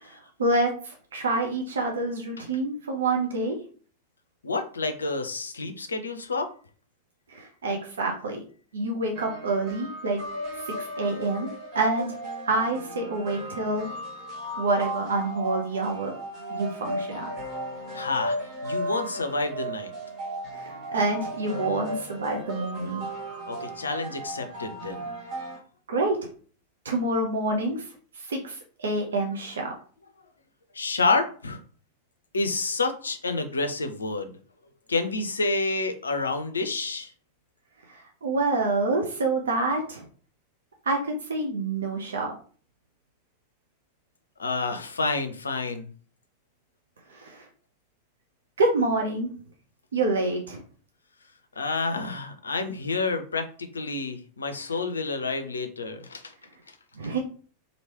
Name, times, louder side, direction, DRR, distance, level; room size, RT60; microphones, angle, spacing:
voice 1, 0.1-3.6 7.3-8.4 8.7-10.2 10.5-11.5 11.7-12.2 12.5-13.9 14.6-16.1 16.5-17.3 20.5-23.0 25.9-26.3 26.8-27.9 28.2-29.7 37.9-40.0 40.9-42.3 47.1-47.5 48.6-49.3 49.9-50.6 56.9-57.2, right 2 dB, 65° right, 2 dB, 0.5 m, -27 dB
voice 2, 4.4-6.5 17.9-18.4 18.6-19.9 23.5-25.1 30.7-31.6 32.3-34.3 34.9-37.1 44.4-45.9 51.6-56.3, left 3 dB, 75° left, 7 dB, 0.4 m, -29 dB
sound 1, 9.2-25.6, right 1 dB, 35° right, 1.1 m, -35 dB
3.0 x 2.7 x 2.9 m, 0.42 s
figure-of-eight pair, 90°, 0 cm